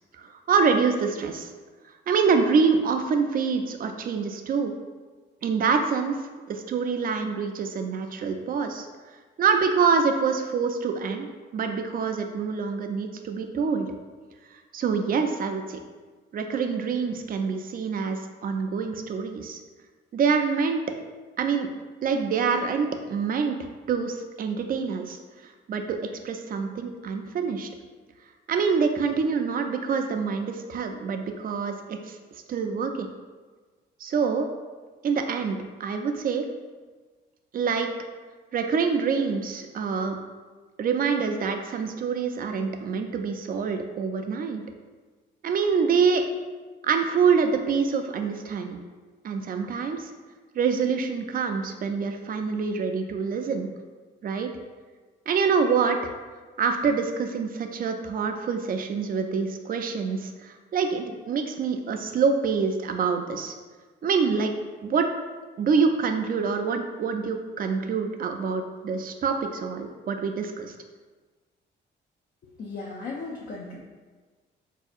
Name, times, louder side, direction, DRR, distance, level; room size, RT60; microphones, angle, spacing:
voice 1, 0.2-1.5 2.1-4.7 5.4-6.2 6.5-8.9 9.4-11.3 11.5-13.9 14.7-15.8 16.3-19.6 20.1-20.8 21.4-21.7 22.0-23.6 23.9-26.0 26.2-27.7 28.5-32.2 32.5-33.1 34.0-34.5 35.0-36.5 37.5-37.9 38.5-40.2 40.8-44.6 45.4-46.2 46.8-48.8 49.2-50.1 50.5-53.7 54.2-54.5 55.3-56.0 56.6-63.5 64.0-65.1 65.6-70.7, right 5 dB, 45° right, 5 dB, 0.4 m, -26 dB
voice 2, 72.6-73.8, left 3 dB, 50° left, -2 dB, 0.5 m, -36 dB
4.2 x 2.7 x 2.4 m, 1.4 s
cardioid pair, 90°, 20 cm